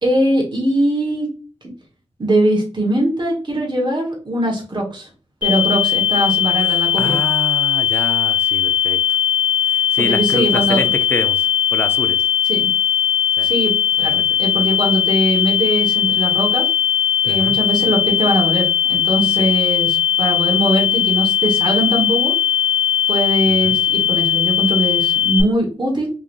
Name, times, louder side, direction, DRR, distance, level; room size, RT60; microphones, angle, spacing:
voice 1, 0.0-1.3 2.2-5.1 5.4-7.2 10.0-10.9 12.5-12.7 13.4-16.6 17.2-22.3 23.1-26.1, right 1 dB, 40° right, -2 dB, 1.6 m, -21 dB
sound 1, 5.4-25.4, left 10 dB, 45° left, 1.7 m, -18 dB
voice 2, 7.0-9.0 9.7-11.5 11.7-12.2 13.4-13.5 14.0-14.1 17.3-17.6 19.4-19.5 23.5-23.7, left 1 dB, 20° left, 8 dB, 0.7 m, -27 dB
3.8 x 3.1 x 2.6 m, 0.37 s
cardioid pair, 55°, 11 cm